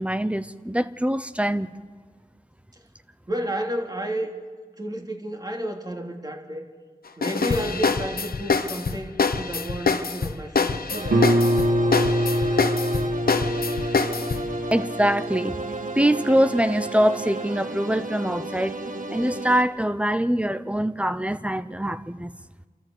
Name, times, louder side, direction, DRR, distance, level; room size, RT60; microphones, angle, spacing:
voice 1, 0.0-1.8 14.7-15.6 15.9-18.8 19.1-22.3, right 1 dB, 10° right, 13 dB, 0.8 m, -23 dB
voice 2, 3.3-4.3 4.8-6.7 7.2-11.3, equal, 25° right, 1 dB, 3.2 m, -31 dB
sound 1, 7.2-14.5, left 4 dB, 80° left, 1.0 m, -25 dB
sound 2, 10.9-19.6, right 3 dB, 65° right, 1.5 m, -33 dB
Guitar, 11.1-16.5, equal, 85° right, 1.6 m, -25 dB
28.0 x 13.5 x 8.1 m, 1.5 s
wide cardioid pair, 55°, 15 cm